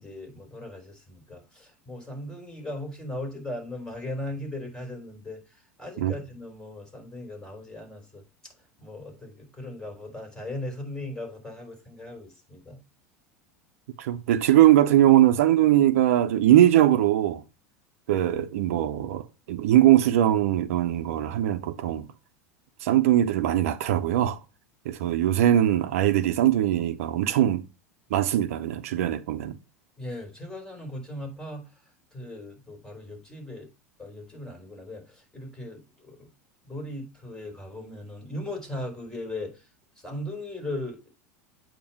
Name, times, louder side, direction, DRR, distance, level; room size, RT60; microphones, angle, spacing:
voice 1, 0.0-5.4 5.8-8.5 8.8-12.8 30.0-31.6 32.1-33.7 34.0-36.3 36.6-39.5 40.0-41.0, left 1 dB, 10° left, 3.6 m, -38 dB
voice 2, 14.0-17.4 18.1-22.1 22.8-24.4 24.8-27.6 28.1-29.6, right 12 dB, 70° right, 0.7 m, -21 dB
8.5 x 2.9 x 5.5 m
hypercardioid pair, 85°, 8 cm